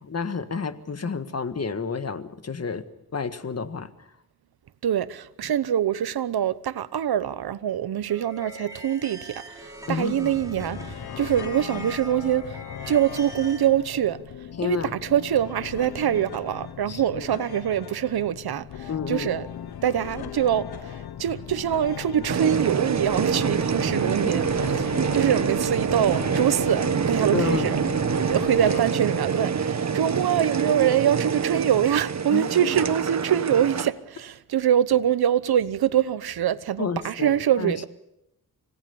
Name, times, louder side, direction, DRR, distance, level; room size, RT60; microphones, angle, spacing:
voice 1, 0.0-2.9 3.1-4.1 9.9-10.3 14.6-14.9 16.9-17.3 18.9-19.3 24.0-24.4 27.3-27.7 32.3-32.5 36.8-37.7, left 5 dB, 40° left, 1.7 m, -30 dB
voice 2, 4.8-12.6 12.9-19.5 19.8-27.8 28.3-37.8, right 10 dB, 75° right, 1.0 m, -24 dB
sound 1, 8.1-13.7, right 1 dB, 10° right, 5.4 m, -42 dB
sound 2, 10.3-28.8, left 9 dB, 75° left, 1.0 m, -38 dB
sound 3, 22.3-33.9, right 6 dB, 45° right, 1.4 m, -26 dB
26.5 x 18.0 x 7.1 m
cardioid pair, 75°, 38 cm